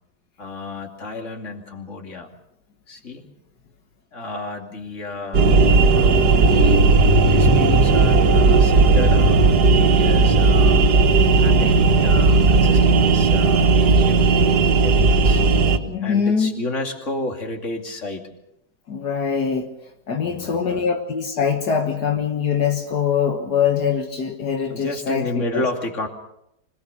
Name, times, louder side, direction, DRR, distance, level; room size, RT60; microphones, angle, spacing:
voice 1, 0.4-2.3 2.9-3.3 4.1-5.5 5.9-6.9 7.2-10.9 11.4-15.4 16.0-18.3 20.2-20.9 24.7-26.1, left 2 dB, 50° left, 3 dB, 2.9 m, -31 dB
sound 1, 5.3-15.8, right 3 dB, 80° right, 2.0 m, -15 dB
voice 2, 15.9-16.6 18.9-19.7 20.1-25.7, left 7 dB, 80° left, 4 dB, 2.0 m, -23 dB
25.5 x 19.0 x 6.7 m, 0.82 s
omnidirectional pair, 1.7 m